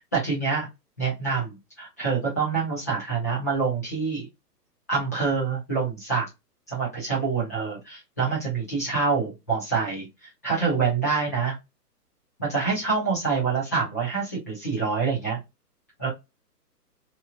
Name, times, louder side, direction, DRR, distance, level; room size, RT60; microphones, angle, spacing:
voice 1, 0.1-0.7 1.0-1.5 1.8-4.3 4.9-6.3 6.7-11.5 12.4-15.4 16.0-16.1, right 5 dB, 10° left, -5 dB, 0.5 m, -26 dB
2.9 x 2.5 x 2.4 m, 0.21 s
hypercardioid pair, 155°, 49 cm